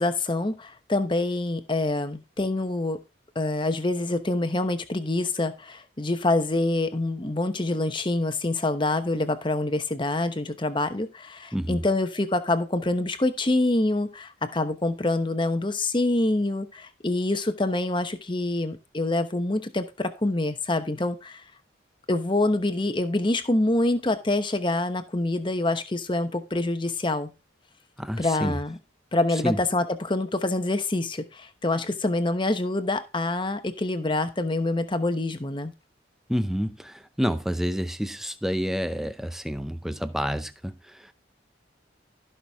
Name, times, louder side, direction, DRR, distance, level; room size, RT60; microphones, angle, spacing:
voice 1, 0.0-3.0 3.3-21.4 22.1-27.3 28.2-28.8 29.1-35.7, left 2 dB, 25° left, 1.0 m, -26 dB
voice 2, 11.5-11.8 28.0-28.6 29.4-29.6 36.3-41.1, equal, ahead, 0.6 m, -29 dB
14.5 x 6.0 x 3.6 m
head